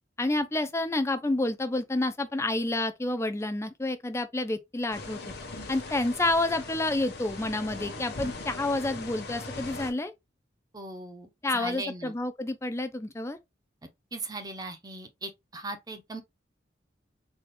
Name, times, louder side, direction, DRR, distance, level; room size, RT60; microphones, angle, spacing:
voice 1, 0.2-5.2 5.7-10.1 11.4-13.4, left 2 dB, 15° left, 0.4 m, -29 dB
sound 1, 4.9-9.9, left 3 dB, 60° left, 1.0 m, -40 dB
voice 2, 10.7-11.3 11.5-12.1 14.1-16.2, right 2 dB, 20° right, 0.7 m, -38 dB
4.1 x 2.3 x 3.2 m
head